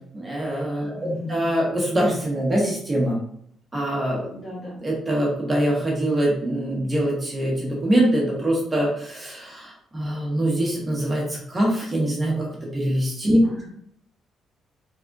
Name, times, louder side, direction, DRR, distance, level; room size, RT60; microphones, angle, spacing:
voice 1, 0.1-1.0 1.3-3.2 3.7-4.3 4.8-13.4, right 1 dB, 20° right, -3 dB, 1.4 m, -23 dB
voice 2, 0.9-1.5 4.3-4.8 13.4-13.7, left 1 dB, 40° left, -3 dB, 1.4 m, -35 dB
3.5 x 3.3 x 2.6 m, 0.66 s
cardioid pair, 90°, 0 cm